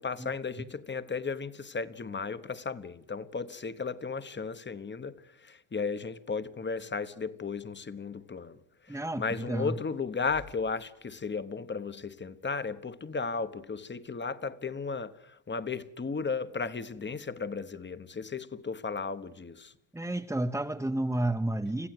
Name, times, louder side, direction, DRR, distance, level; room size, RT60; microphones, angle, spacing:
voice 1, 0.0-8.6 8.9-19.7, left 4 dB, 20° left, 1.1 m, -35 dB
voice 2, 8.9-9.8 19.9-21.9, right 1 dB, 5° right, 0.9 m, -31 dB
26.0 x 15.5 x 7.9 m
cardioid pair, 100°, 49 cm